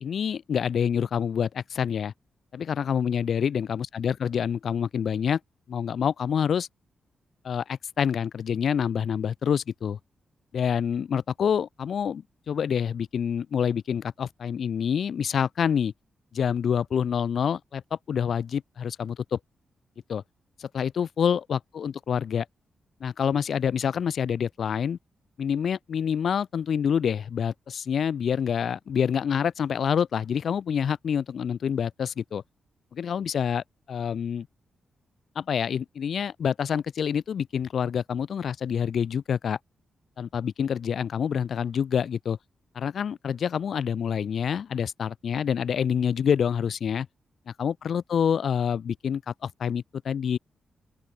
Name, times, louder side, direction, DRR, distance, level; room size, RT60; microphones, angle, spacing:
voice 1, 0.0-2.1 2.5-5.4 5.7-6.7 7.4-10.0 10.5-15.9 16.3-19.4 20.1-20.2 20.6-22.4 23.0-25.0 25.4-32.4 32.9-34.5 35.3-39.6 40.2-42.4 42.7-47.1 47.5-50.4, left 7 dB, 55° left, 4.9 m, -27 dB
open air
wide cardioid pair, 170°, 0 cm